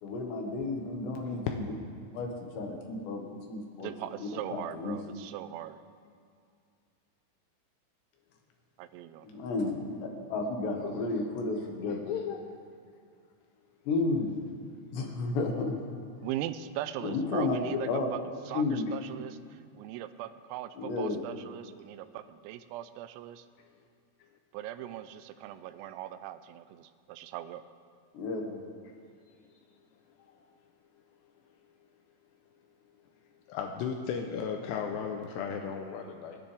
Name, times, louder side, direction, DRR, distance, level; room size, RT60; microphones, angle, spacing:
voice 1, 0.0-1.7 2.1-5.0 9.2-12.0 13.9-14.4 14.9-15.7 17.0-17.6 17.9-18.1 18.5-18.8 20.8-21.2 28.1-28.6, left 3 dB, 65° left, 1 dB, 3.4 m, -32 dB
voice 2, 3.8-5.8 8.8-9.3 16.2-18.2 18.5-23.5 24.5-27.6, right 12 dB, 85° right, 12 dB, 3.3 m, -40 dB
voice 3, 10.8-11.3 11.5-12.4 18.5-18.6 21.9-22.0 25.9-26.0 29.6-29.7 30.2-30.3 33.5-36.4, left 7 dB, 85° left, 3 dB, 2.4 m, -36 dB
30.0 x 10.0 x 3.5 m, 2.3 s
omnidirectional pair, 5.9 m